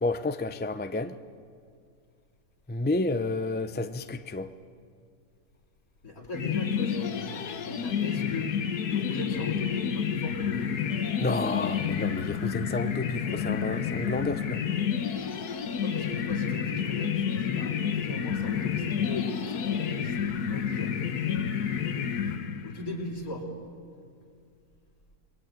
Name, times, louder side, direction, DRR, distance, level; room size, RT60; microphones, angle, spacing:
voice 1, 0.0-1.2 2.7-4.5 11.2-14.6, left 2 dB, 15° left, 0.4 m, -30 dB
voice 2, 6.0-8.5 8.9-10.7 15.7-21.0 22.6-23.5, left 2 dB, 65° left, 4.4 m, -38 dB
sound 1, 6.3-22.9, left 8 dB, 80° left, 1.7 m, -30 dB
28.0 x 22.0 x 9.1 m
omnidirectional pair, 1.7 m